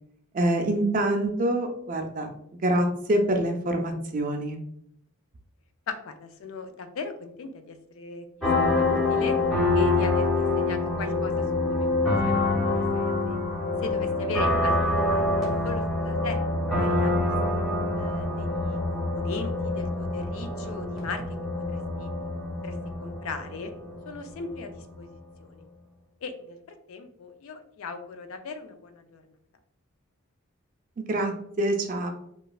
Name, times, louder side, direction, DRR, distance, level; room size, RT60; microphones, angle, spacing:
voice 1, 0.3-2.3 2.6-4.6 31.0-31.3 31.6-32.1, right 1 dB, 40° right, 4 dB, 0.4 m, -25 dB
voice 2, 5.9-8.3 8.6-9.4 9.7-13.4 13.8-16.4 16.8-17.2 17.4-17.6 18.0-21.2 21.6-22.1 22.6-23.7 24.1-25.1 25.4-25.7 26.2-29.2, left 4 dB, 65° left, 7 dB, 0.4 m, -38 dB
sound 1, 8.4-24.9, left 2 dB, ahead, 0.7 m, -26 dB
3.0 x 2.3 x 2.4 m, 0.72 s
head